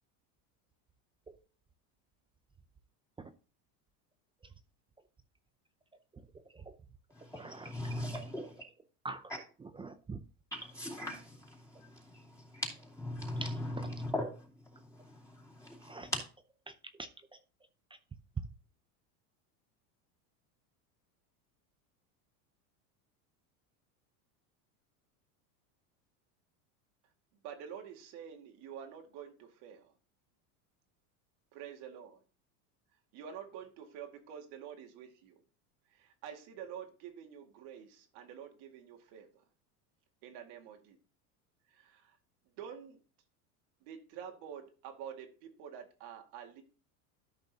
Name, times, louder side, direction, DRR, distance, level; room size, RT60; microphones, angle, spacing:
voice 1, 6.3-6.7 7.3-7.7 8.0-8.3 9.0-9.3 9.6-10.2 13.4-14.0 15.8-16.1 16.7-16.8 17.0-17.1, right 3 dB, 10° right, 0.4 m, -45 dB
voice 2, 7.1-8.6 10.5-16.2, left 1 dB, 5° left, 2.4 m, -40 dB
voice 3, 27.4-29.9 31.5-32.2 33.1-35.4 36.0-39.3 40.2-41.0 41.7-42.0 42.6-43.0 43.9-46.6, right 8 dB, 60° right, 2.1 m, -48 dB
13.0 x 5.4 x 2.8 m
supercardioid pair, 115°, 45 cm